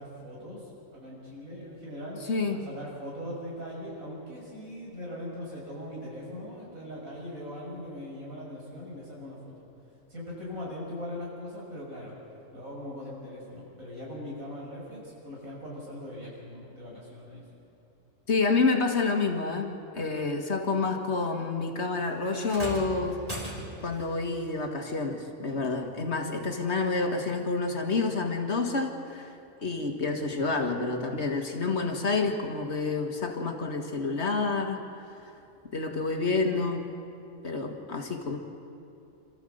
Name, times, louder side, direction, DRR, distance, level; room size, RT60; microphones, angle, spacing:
voice 1, 0.0-2.2 2.5-9.5 10.1-12.1 12.5-17.4 38.0-38.1, left 1 dB, 90° right, -4 dB, 6.7 m, -40 dB
voice 2, 2.3-2.7 18.3-23.2 23.8-29.3 29.6-34.8 35.7-36.8 37.4-38.4, left 3 dB, 55° left, 4 dB, 1.9 m, -28 dB
sound 1, 22.5-24.0 25.5-25.6 26.5-26.6, right 1 dB, 25° right, 3.1 m, -38 dB
27.5 x 14.0 x 7.9 m, 2.7 s
omnidirectional pair, 1.4 m